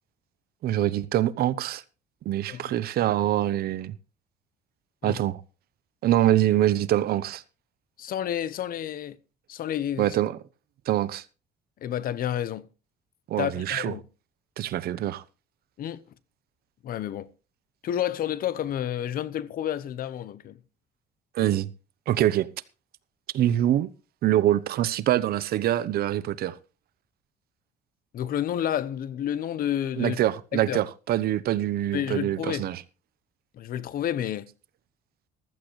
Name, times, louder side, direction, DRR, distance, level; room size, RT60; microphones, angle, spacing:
voice 1, 0.6-1.8 2.2-3.9 5.0-5.4 6.0-7.4 10.0-10.4 10.9-11.2 13.3-13.9 14.6-15.2 21.3-21.7 22.1-22.5 23.3-23.9 24.2-26.6 30.0-32.8, right 13 dB, 65° right, 0.9 m, -24 dB
voice 2, 2.5-2.8 5.0-5.2 8.0-9.2 9.5-10.1 11.8-12.7 13.4-14.0 15.8-16.0 16.8-17.3 17.8-20.6 28.1-30.2 30.5-30.8 31.9-32.6 33.5-34.5, left 10 dB, 60° left, 0.9 m, -30 dB
15.0 x 14.0 x 3.2 m
cardioid pair, 110°, 17 cm